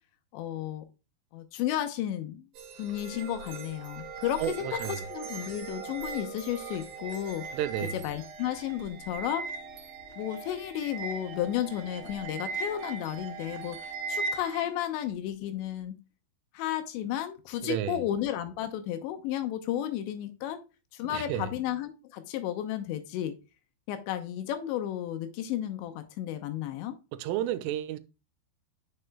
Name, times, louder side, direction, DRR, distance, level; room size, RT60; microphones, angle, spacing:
voice 1, 0.3-0.8 1.3-2.5 2.8-7.5 7.9-9.5 10.2-16.0 16.5-20.6 20.9-23.3 23.9-27.0, left 11 dB, 80° left, 2.8 m, -33 dB
sound 1, 2.6-14.7, right 4 dB, 60° right, 2.4 m, -39 dB
voice 2, 4.4-5.0 7.5-8.0 17.6-18.0 21.0-21.5 27.1-28.0, right 12 dB, 85° right, 3.1 m, -32 dB
8.4 x 6.6 x 2.2 m
omnidirectional pair, 5.6 m